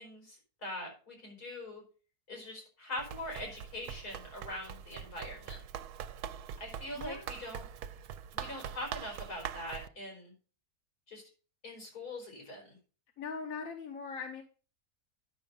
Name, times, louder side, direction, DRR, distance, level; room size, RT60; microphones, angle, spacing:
voice 1, 0.0-1.8 2.3-5.6 6.6-7.6 8.3-10.3 11.1-11.2 11.6-12.8, left 1 dB, 85° left, 1 dB, 4.8 m, -42 dB
Run, 3.0-9.9, right 9 dB, 80° right, 1.2 m, -43 dB
voice 2, 6.9-7.3 13.2-14.4, left 5 dB, 65° left, 4 dB, 1.5 m, -40 dB
10.5 x 6.4 x 5.3 m, 0.37 s
omnidirectional pair, 1.6 m